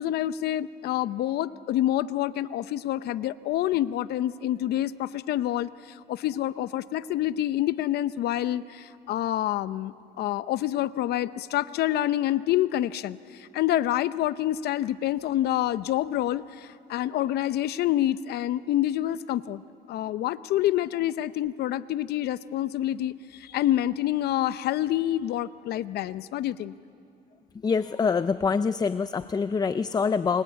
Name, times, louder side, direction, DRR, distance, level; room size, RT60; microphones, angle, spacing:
voice 1, 0.0-19.6 19.9-26.7, left 13 dB, 70° left, 15 dB, 0.8 m, -27 dB
voice 2, 27.6-30.4, left 5 dB, 25° left, 13 dB, 0.5 m, -25 dB
28.5 x 24.0 x 8.2 m, 2.8 s
cardioid pair, 110°, 17 cm